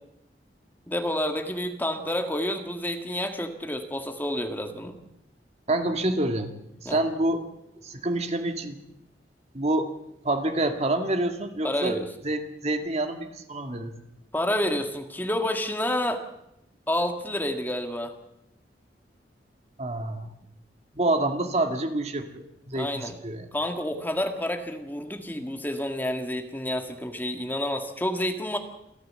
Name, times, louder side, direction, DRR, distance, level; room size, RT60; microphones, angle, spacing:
voice 1, 0.9-5.0 6.9-7.0 11.6-12.1 14.3-16.2 16.9-18.1 22.7-23.2 23.5-28.6, left 1 dB, 10° left, 5 dB, 1.9 m, -29 dB
voice 2, 5.7-6.5 6.8-7.4 7.8-8.8 9.5-9.9 10.2-12.0 12.2-13.9 19.8-20.3 21.0-23.5, right 2 dB, 40° right, 6 dB, 2.0 m, -27 dB
28.0 x 14.0 x 7.6 m, 0.85 s
head